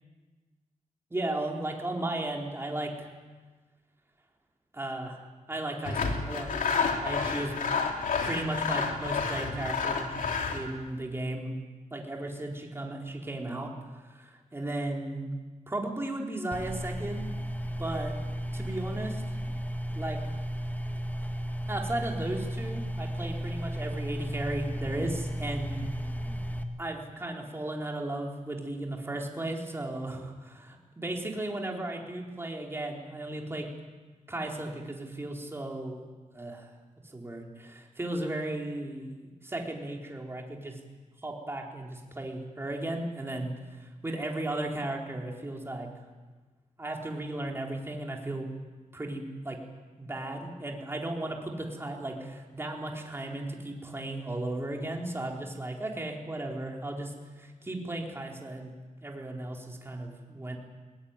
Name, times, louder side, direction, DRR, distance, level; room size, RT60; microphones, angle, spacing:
voice 1, 1.1-3.1 4.7-5.2 5.5-6.5 7.0-7.6 8.2-10.1 10.5-11.6 11.9-15.3 15.7-17.3 17.8-18.1 18.5-19.2 19.9-20.2 21.7-25.8 26.8-33.7 34.3-36.1 36.3-36.7 37.0-40.8 41.2-45.9 46.8-48.5 48.9-49.6 50.0-58.7 59.0-60.6, right 1 dB, 20° right, 0 dB, 4.3 m, -35 dB
Sawing, 5.8-10.7, left 5 dB, 80° left, 3.1 m, -30 dB
sound 1, 16.5-26.6, equal, 10° left, 1.9 m, -34 dB
21.5 x 20.0 x 9.9 m, 1.3 s
wide cardioid pair, 115°, 14 cm